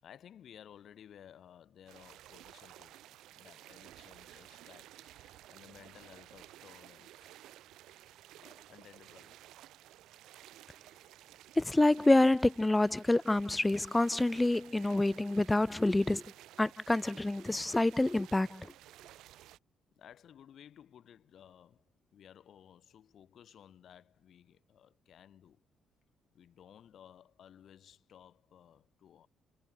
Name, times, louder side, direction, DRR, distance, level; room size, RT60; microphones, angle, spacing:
voice 1, 0.0-7.4 7.9-9.4 19.9-25.6 26.3-29.3, left 9 dB, 65° left, 7.4 m, -57 dB
sound 1, 1.9-19.6, right 14 dB, 85° right, 1.3 m, -55 dB
voice 2, 11.6-16.2 16.6-18.7, left 2 dB, 15° left, 0.3 m, -27 dB
cardioid pair, 90°, 0 cm